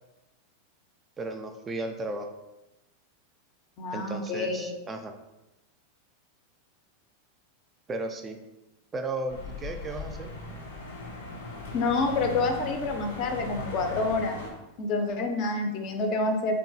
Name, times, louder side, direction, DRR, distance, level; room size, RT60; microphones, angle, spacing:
voice 1, 1.2-2.3 3.9-5.1 7.9-8.4 8.9-10.3, right 2 dB, 25° right, 5 dB, 0.3 m, -34 dB
voice 2, 3.8-4.7 11.7-14.4 14.8-16.5, left 3 dB, 45° left, 5 dB, 0.5 m, -28 dB
sound 1, 9.3-14.5, left 3 dB, 80° left, 0.7 m, -39 dB
3.1 x 2.3 x 2.7 m, 0.99 s
hypercardioid pair, 100°, 0 cm